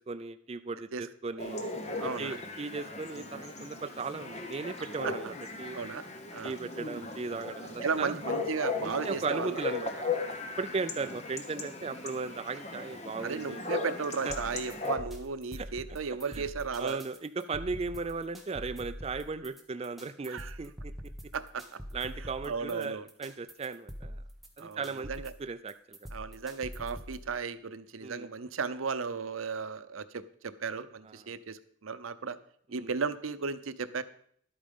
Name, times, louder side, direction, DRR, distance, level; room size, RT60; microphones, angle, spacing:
voice 1, 0.0-1.6 2.0-5.8 6.4-8.2 8.8-9.9 10.6-13.6 14.2-14.4 14.8-14.9 15.6-15.7 16.2-16.4 16.8-20.9 21.9-24.2 24.6-25.1 25.4-26.0 28.0-28.3 31.1-31.3 32.7-32.9, right 4 dB, 30° right, 9 dB, 0.3 m, -37 dB
Chatter / Bark / Livestock farm animals working animals, 1.4-15.0, left 3 dB, 35° left, 1.2 m, -37 dB
voice 2, 2.0-2.4 5.0-5.1 5.7-6.0 6.3-6.5 7.8-9.6 13.2-17.0 20.3-20.6 21.3-21.8 22.4-23.1 24.6-25.3 26.1-32.4 32.7-34.0, right 5 dB, 85° right, 13 dB, 0.7 m, -35 dB
sound 1, 14.3-27.3, equal, ahead, 1.3 m, -44 dB
11.5 x 8.7 x 5.3 m, 0.63 s
head